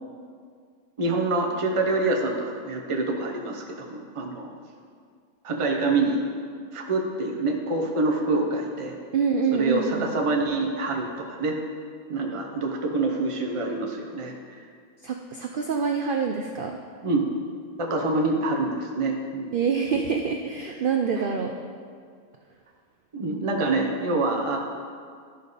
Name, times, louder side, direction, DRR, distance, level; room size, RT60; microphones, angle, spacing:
voice 1, 1.0-4.6 5.4-6.2 6.7-9.0 9.5-11.6 12.1-14.6 17.0-17.2 17.8-19.5 21.2-21.3 23.1-24.6, right 2 dB, 30° right, 1 dB, 0.7 m, -26 dB
voice 2, 9.1-10.1 15.0-16.8 19.5-21.5, right 6 dB, 75° right, 3 dB, 0.4 m, -26 dB
12.0 x 5.0 x 4.1 m, 2.1 s
omnidirectional pair, 1.5 m